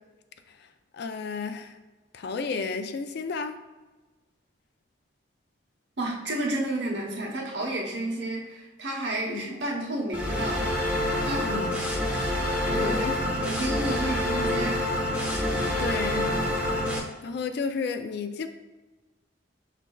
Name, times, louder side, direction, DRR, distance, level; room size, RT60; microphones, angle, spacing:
voice 1, 0.9-1.8 2.1-3.6 9.2-9.6 11.4-11.8 12.7-13.2 15.8-16.3 17.2-18.5, left 5 dB, 65° left, 9 dB, 0.3 m, -32 dB
voice 2, 6.0-10.6 11.2-11.5 12.6-13.1 13.3-14.8, right 1 dB, 75° right, -2 dB, 0.9 m, -31 dB
sound 1, 10.1-17.0, left 1 dB, 5° right, 0.8 m, -27 dB
6.0 x 3.3 x 2.3 m, 1.2 s
head